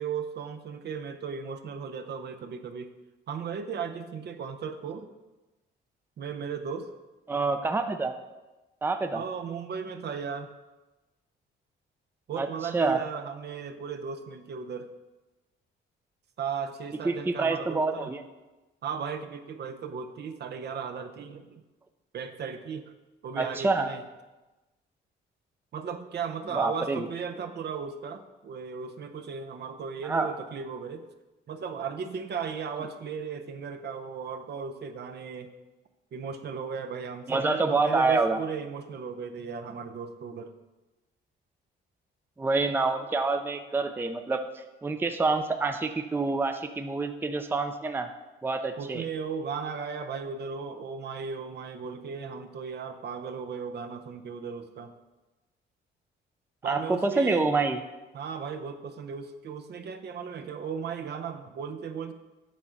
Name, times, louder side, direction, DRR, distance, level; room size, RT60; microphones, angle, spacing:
voice 1, 0.0-2.9 3.3-5.1 6.2-6.9 9.1-10.5 12.3-14.9 16.4-18.1 18.8-21.6 22.1-22.9 23.2-24.0 25.7-31.0 31.5-35.5 36.1-40.5 48.8-54.9 56.6-57.5 58.1-62.1, right 6 dB, 55° right, 7 dB, 0.7 m, -36 dB
voice 2, 7.3-8.1 8.8-9.2 12.4-12.5 12.7-13.0 17.0-18.2 23.4-23.9 26.5-27.1 30.0-30.3 37.3-38.4 42.4-48.1 48.4-49.0 56.6-57.8, right 3 dB, 10° right, 6 dB, 0.5 m, -27 dB
8.4 x 3.8 x 5.8 m, 1.1 s
cardioid pair, 90°, 20 cm